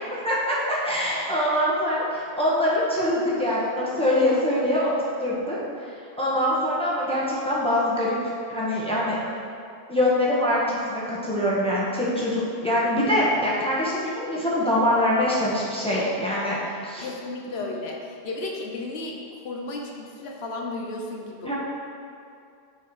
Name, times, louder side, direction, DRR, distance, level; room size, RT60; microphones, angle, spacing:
voice 1, 0.2-4.9 5.2-5.6 6.2-8.2 8.5-9.2 9.9-16.6 16.8-17.1 21.4-21.5, left 1 dB, 5° left, -7 dB, 1.4 m, -24 dB
voice 2, 17.0-19.2 19.4-21.5, left 2 dB, 80° left, 0 dB, 1.0 m, -33 dB
9.3 x 4.6 x 4.8 m, 2.5 s
omnidirectional pair, 1.0 m